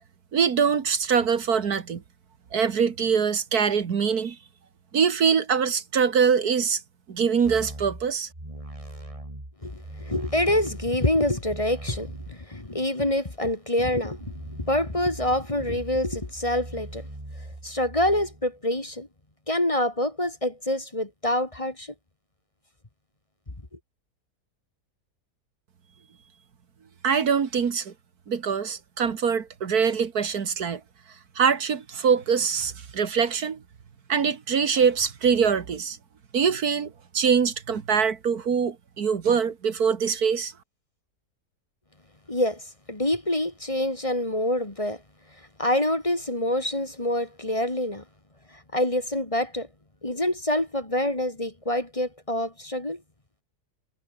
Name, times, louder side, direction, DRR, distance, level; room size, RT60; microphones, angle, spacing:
voice 1, 0.3-2.0 2.5-4.4 4.9-6.8 7.1-8.3 27.0-27.9 28.3-30.8 31.4-33.6 34.1-36.0 36.3-40.5, right 6 dB, 70° right, 2.0 m, -23 dB
sound 1, 7.4-10.9 11.4-12.4 14.0-18.5, right 1 dB, 20° right, 4.5 m, -40 dB
voice 2, 9.6-17.0 17.6-19.1 19.5-21.9 42.3-42.6 42.9-45.0 45.6-48.0 48.7-49.7 50.0-53.0, left 1 dB, 20° left, 2.2 m, -26 dB
omnidirectional pair, 1.7 m